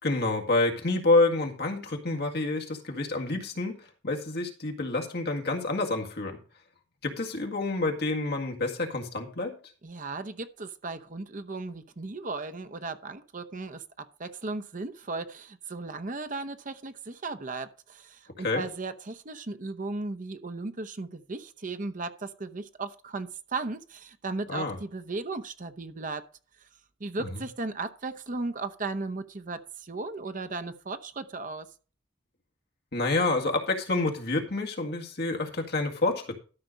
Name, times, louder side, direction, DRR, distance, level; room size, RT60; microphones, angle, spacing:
voice 1, 0.0-6.4 7.0-9.6 18.4-18.6 24.5-24.8 27.2-27.3 32.9-36.4, left 2 dB, 60° left, 1.9 m, -28 dB
voice 2, 9.8-26.2 27.0-31.7, right 3 dB, 45° right, 0.8 m, -36 dB
13.0 x 5.9 x 5.2 m
head